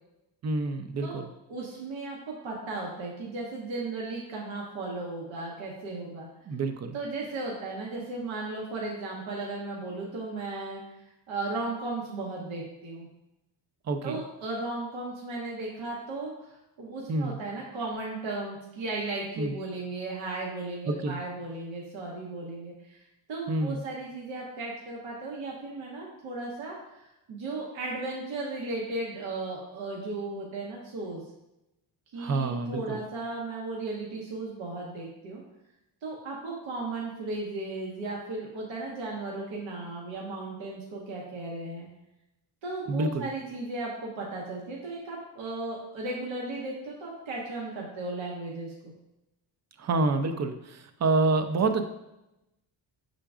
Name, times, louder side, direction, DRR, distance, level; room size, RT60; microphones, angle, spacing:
voice 1, 0.4-1.3 6.5-7.0 13.9-14.2 17.1-17.4 19.4-19.5 20.9-21.2 23.5-23.8 32.2-33.0 42.9-43.3 49.8-51.9, right 3 dB, 35° right, 8 dB, 0.4 m, -28 dB
voice 2, 1.5-6.3 6.9-10.8 11.3-13.1 14.0-31.2 32.1-35.4 36.0-41.9 42.6-48.9, right 2 dB, 75° right, -3 dB, 1.0 m, -36 dB
5.7 x 3.8 x 2.4 m, 0.91 s
cardioid pair, 90°, 48 cm